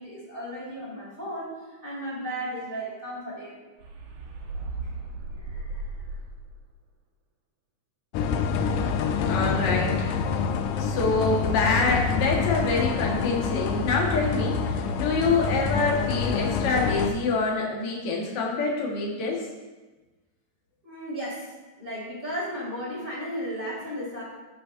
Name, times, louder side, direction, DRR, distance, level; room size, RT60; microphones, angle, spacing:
voice 1, 0.0-1.6 1.8-3.6 5.4-5.9 20.8-21.5 21.8-24.2, equal, 20° right, -6 dB, 2.2 m, -35 dB
sound 1, 3.8-6.6, right 3 dB, 70° right, 1.6 m, -36 dB
sound 2, 8.1-17.1, left 5 dB, 85° left, 2.0 m, -27 dB
voice 2, 9.2-10.2 10.8-19.4, left 3 dB, 45° left, -1 dB, 1.5 m, -26 dB
15.5 x 5.7 x 2.6 m, 1.2 s
omnidirectional pair, 3.6 m